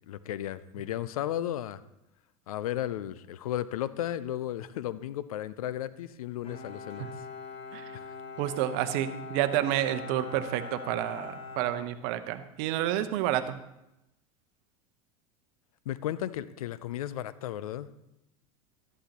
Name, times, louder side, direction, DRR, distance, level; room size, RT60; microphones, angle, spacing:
voice 1, 0.1-1.8 2.5-7.1 7.9-8.1 15.9-17.9, left 12 dB, 75° left, 16 dB, 0.5 m, -34 dB
Bowed string instrument, 6.4-12.6, left 4 dB, 30° left, 1.6 m, -43 dB
voice 2, 8.4-13.5, right 12 dB, 60° right, 11 dB, 0.9 m, -29 dB
12.5 x 11.5 x 2.9 m, 0.88 s
hypercardioid pair, 85°, 19 cm